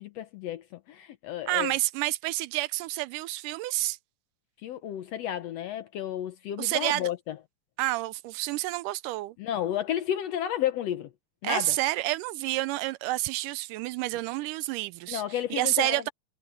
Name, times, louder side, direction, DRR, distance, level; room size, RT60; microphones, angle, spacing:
voice 1, 0.0-1.7 4.6-7.3 9.4-11.1 11.4-11.8 15.1-16.1, left 11 dB, 75° left, 1.5 m, -32 dB
voice 2, 1.5-4.0 6.6-7.1 7.8-9.4 11.4-16.1, right 18 dB, 80° right, 2.1 m, -29 dB
omnidirectional pair, 3.8 m